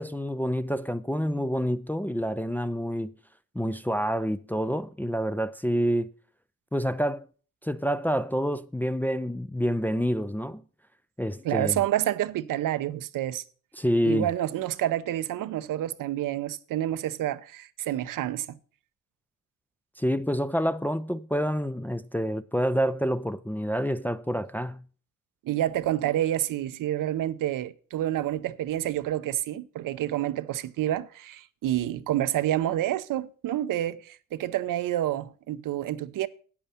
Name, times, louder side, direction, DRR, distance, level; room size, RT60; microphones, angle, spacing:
voice 1, 0.0-3.1 3.6-6.1 6.7-7.3 7.6-10.6 11.2-11.8 13.8-14.3 20.0-24.8, equal, 5° left, 0.4 m, -28 dB
voice 2, 11.4-13.4 14.0-18.6 25.4-36.3, right 13 dB, 70° right, 0.7 m, -28 dB
8.8 x 8.7 x 5.6 m
cardioid pair, 75°, 33 cm